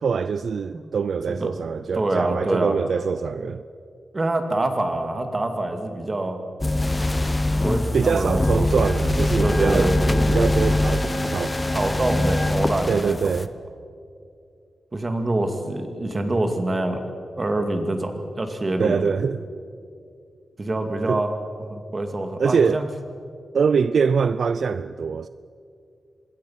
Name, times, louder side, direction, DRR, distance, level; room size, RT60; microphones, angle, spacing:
voice 1, 0.0-3.6 7.9-9.9 10.3-11.6 12.9-13.5 18.8-19.4 21.1-21.2 22.4-22.8 23.5-25.3, right 6 dB, 60° right, 0.4 m, -23 dB
voice 2, 1.9-2.8 4.1-6.4 7.6-8.9 9.4-10.3 11.7-13.3 14.9-17.0 17.4-19.1 20.6-22.9, right 2 dB, 25° right, 2.3 m, -26 dB
sound 1, 6.6-13.5, left 1 dB, 15° left, 0.9 m, -22 dB
25.5 x 22.0 x 5.8 m
wide cardioid pair, 145°, 0 cm